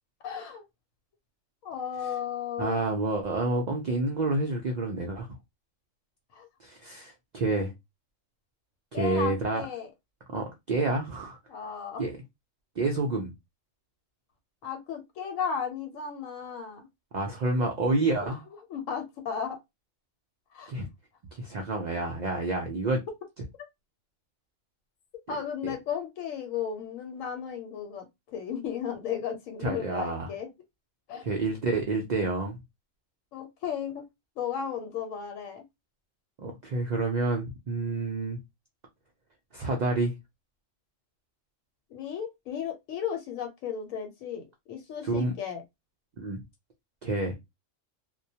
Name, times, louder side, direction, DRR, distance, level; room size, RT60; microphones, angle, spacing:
voice 1, 0.2-0.6 1.6-2.8 6.3-6.5 8.9-9.9 11.5-12.0 14.6-16.9 18.2-18.4 18.7-19.6 20.5-20.7 25.3-28.1 28.3-30.5 31.1-31.2 33.3-34.0 34.4-35.6 41.9-45.6, left 7 dB, 85° left, 1.0 m, -34 dB
voice 2, 2.6-5.3 6.6-7.7 8.9-9.6 10.3-11.4 12.0-12.2 12.8-13.3 17.1-18.4 20.7-20.9 21.3-23.0 25.3-25.4 25.6-25.8 29.6-30.3 31.2-32.6 36.4-38.4 39.5-40.1 45.0-45.3 46.2-46.4 47.0-47.3, right 2 dB, 85° right, 0.3 m, -28 dB
2.2 x 2.1 x 2.7 m
omnidirectional pair, 1.3 m